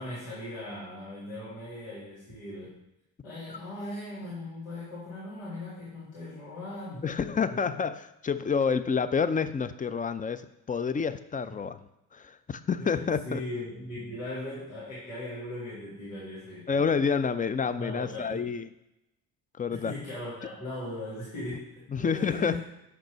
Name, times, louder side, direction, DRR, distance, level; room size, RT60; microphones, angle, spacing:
voice 1, 0.0-2.8 3.2-7.0 7.5-7.6 12.8-16.9 17.8-18.5 19.7-22.6, left 1 dB, 90° left, -10 dB, 2.4 m, -39 dB
voice 2, 7.0-11.8 12.1-13.4 16.7-18.7 19.6-19.9 21.9-22.6, left 6 dB, 20° left, 12 dB, 0.5 m, -28 dB
6.0 x 5.2 x 4.5 m, 0.88 s
hypercardioid pair, 55°, 40 cm